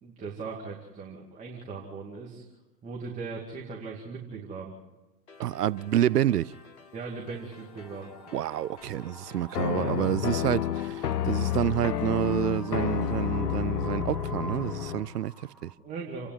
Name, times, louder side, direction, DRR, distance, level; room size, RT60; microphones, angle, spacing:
voice 1, 0.0-2.4 2.8-4.7 6.9-8.1 9.8-10.0 10.3-10.4 15.8-16.3, right 4 dB, 15° right, 2.5 m, -39 dB
sound 1, 5.3-13.3, left 6 dB, 45° left, 2.6 m, -52 dB
voice 2, 5.4-6.6 8.3-15.7, right 12 dB, 70° right, 0.6 m, -28 dB
Wind, 7.6-15.7, right 2 dB, ahead, 1.7 m, -47 dB
sound 2, 9.5-15.1, left 10 dB, 70° left, 0.8 m, -30 dB
28.5 x 9.9 x 9.6 m
hypercardioid pair, 125°, 49 cm